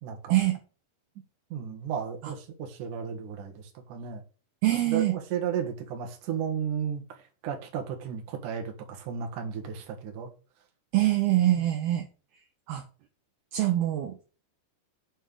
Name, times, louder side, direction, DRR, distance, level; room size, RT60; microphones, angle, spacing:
voice 1, 0.0-0.4 1.5-4.2 4.9-10.3 11.5-11.7, right 7 dB, 55° right, 2.5 m, -34 dB
voice 2, 4.6-5.2 10.9-12.1 12.7-12.8 13.5-14.4, right 14 dB, 75° right, 2.6 m, -24 dB
7.6 x 4.4 x 6.8 m
omnidirectional pair, 5.2 m